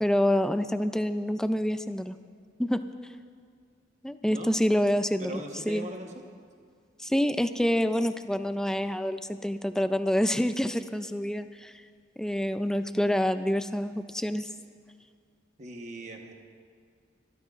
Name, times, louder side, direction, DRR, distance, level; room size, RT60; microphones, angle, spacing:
voice 1, 0.0-2.2 2.6-2.8 4.0-5.9 7.0-11.8 12.2-14.5, equal, 5° left, 10 dB, 0.4 m, -27 dB
voice 2, 5.2-6.1 15.6-16.3, right 2 dB, 40° right, 2 dB, 1.2 m, -40 dB
29.0 x 13.5 x 2.5 m, 2.1 s
head